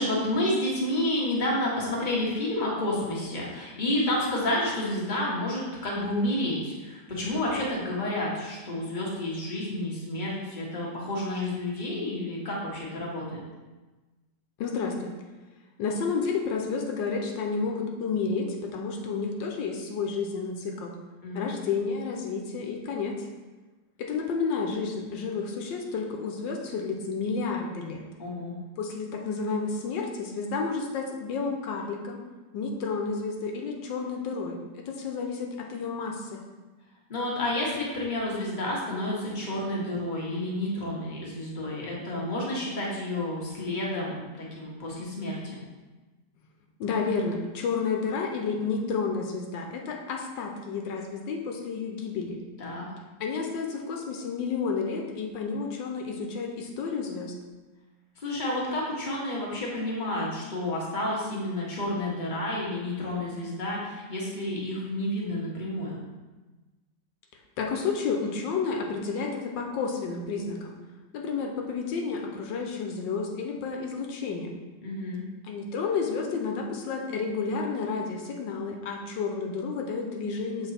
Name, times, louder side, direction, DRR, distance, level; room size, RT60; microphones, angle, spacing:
voice 1, 0.0-13.4 21.2-21.5 28.2-28.5 37.1-45.6 52.6-52.9 58.2-66.0 74.8-75.2, left 1 dB, 30° left, -5 dB, 1.4 m, -30 dB
voice 2, 14.6-15.1 15.8-20.9 21.3-23.3 24.0-28.0 28.8-32.2 32.5-36.4 46.8-52.4 53.2-57.3 67.6-70.8 71.1-74.6 75.5-80.7, left 5 dB, 85° left, 1 dB, 1.5 m, -31 dB
7.0 x 4.0 x 4.3 m, 1.2 s
omnidirectional pair, 1.9 m